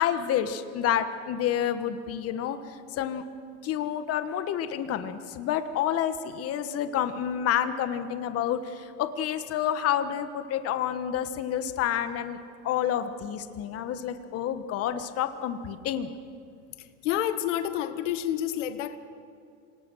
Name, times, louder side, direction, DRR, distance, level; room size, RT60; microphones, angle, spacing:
voice 1, 0.0-3.2 3.6-16.1, left 10 dB, 40° left, 10 dB, 1.3 m, -29 dB
voice 2, 17.0-19.0, left 11 dB, 75° left, 10 dB, 1.4 m, -29 dB
27.5 x 19.0 x 6.3 m, 2.3 s
supercardioid pair, 110°, 37 cm